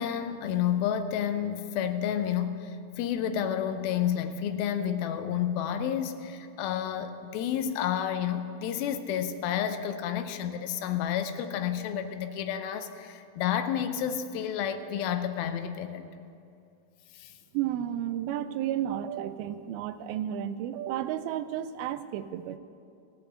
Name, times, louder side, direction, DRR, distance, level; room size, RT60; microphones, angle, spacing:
voice 1, 0.0-16.1 17.1-17.3, left 9 dB, 85° left, 8 dB, 2.6 m, -30 dB
voice 2, 17.5-22.6, right 11 dB, 85° right, 11 dB, 2.4 m, -32 dB
15.5 x 7.8 x 8.2 m, 2.5 s
omnidirectional pair, 4.3 m